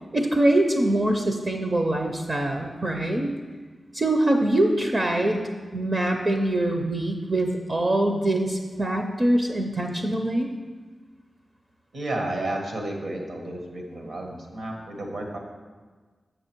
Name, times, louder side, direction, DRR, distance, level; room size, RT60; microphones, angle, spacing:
voice 1, 0.1-3.3 3.9-5.4 5.7-10.5, right 1 dB, 35° right, 3 dB, 0.6 m, -23 dB
voice 2, 11.9-15.4, right 1 dB, 70° right, 1 dB, 1.3 m, -32 dB
6.8 x 6.6 x 4.5 m, 1.4 s
wide cardioid pair, 140°, 0 cm